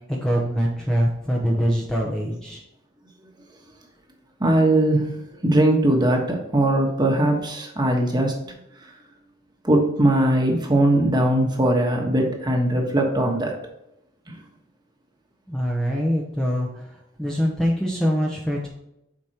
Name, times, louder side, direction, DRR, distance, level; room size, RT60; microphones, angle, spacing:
voice 1, 0.1-2.6 15.5-16.9 17.2-18.7, equal, 5° left, 0.8 m, -24 dB
voice 2, 4.4-5.1 5.4-8.4 9.6-13.5 14.3-14.4, right 1 dB, 20° right, 1.3 m, -20 dB
7.7 x 5.2 x 2.9 m
head